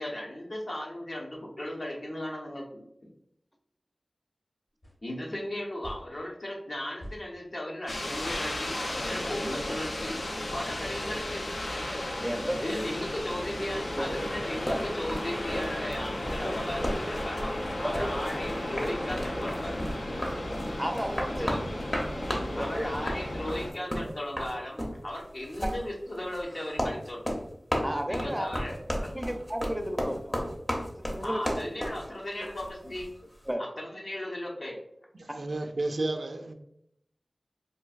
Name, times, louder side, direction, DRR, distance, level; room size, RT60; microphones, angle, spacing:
voice 1, 0.0-3.1 5.0-8.8 9.0-10.2 10.5-11.5 12.6-19.8 21.3-21.6 22.5-27.4 28.1-29.2 31.2-33.1 33.6-34.8, left 1 dB, 65° left, -2 dB, 0.8 m, -36 dB
sound 1, 4.8-5.0 5.8-6.1 7.0-7.2 8.3-8.5 9.2-9.4 10.8-11.0, equal, 45° left, 1.1 m, -44 dB
sound 2, 7.9-23.7, left 1 dB, 85° left, 0.5 m, -34 dB
voice 2, 12.2-12.6 14.0-14.1 14.7-14.8 16.4-16.5 18.0-18.1 20.8-21.5 22.3-22.9 25.6-25.7 27.8-28.5 29.1-30.4 31.1-31.6 33.5-33.6, equal, 5° right, 4 dB, 0.4 m, -33 dB
sound 3, 14.7-33.1, equal, 30° left, 0.7 m, -34 dB
voice 3, 35.1-36.5, right 2 dB, 70° right, 6 dB, 0.3 m, -32 dB
3.9 x 2.5 x 2.3 m, 0.75 s
wide cardioid pair, 70°, 0 cm